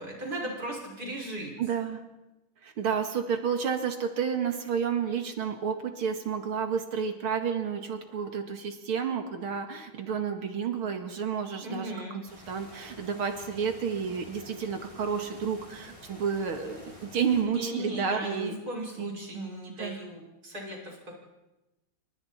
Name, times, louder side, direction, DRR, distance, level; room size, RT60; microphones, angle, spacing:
voice 1, 0.0-1.5 11.6-12.2 17.5-21.2, right 1 dB, 45° right, -2 dB, 6.4 m, -37 dB
voice 2, 1.6-2.0 2.6-18.6 19.0-19.5 19.8-20.0, right 6 dB, 90° right, 5 dB, 2.8 m, -31 dB
sound 1, 12.3-17.4, equal, 10° left, 6.8 m, -50 dB
28.5 x 25.5 x 4.4 m, 1.0 s
omnidirectional pair, 2.3 m